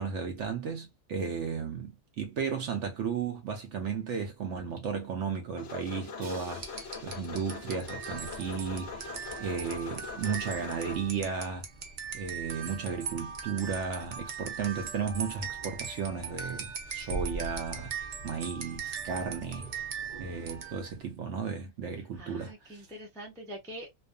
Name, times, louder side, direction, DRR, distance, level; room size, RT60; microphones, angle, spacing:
voice 1, 0.0-11.6 12.1-17.9 18.2-19.8 20.2-22.8, right 6 dB, 65° right, 0.7 m, -34 dB
sound 1, 5.6-11.0, left 5 dB, 60° left, 0.8 m, -42 dB
Crash cymbal, 6.2-8.2, right 3 dB, 35° right, 0.9 m, -53 dB
sound 2, 6.6-21.0, right 5 dB, 85° right, 0.4 m, -39 dB
voice 2, 21.9-23.9, right 1 dB, 5° left, 0.3 m, -44 dB
2.4 x 2.3 x 2.2 m
omnidirectional pair, 1.5 m